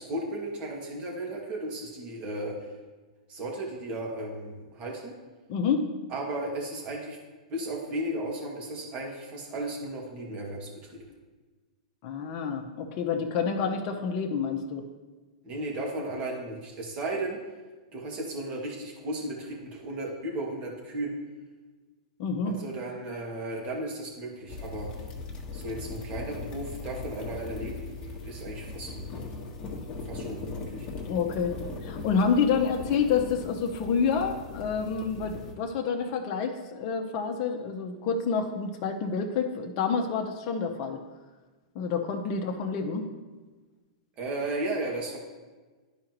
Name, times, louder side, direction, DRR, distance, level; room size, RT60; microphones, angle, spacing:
voice 1, 0.0-2.8 3.3-5.1 6.1-7.2 7.5-11.0 15.4-17.4 17.9-21.2 22.4-24.9 25.5-29.0 30.0-30.9 44.2-45.2, right 1 dB, 35° right, -2 dB, 2.1 m, -35 dB
voice 2, 5.5-5.9 12.0-14.8 22.2-22.6 31.1-41.0 41.7-43.1, left 5 dB, 45° left, 2 dB, 0.9 m, -28 dB
sound 1, 24.5-35.5, left 3 dB, 25° left, 1.4 m, -39 dB
11.5 x 4.9 x 3.0 m, 1.3 s
hypercardioid pair, 120°, 4 cm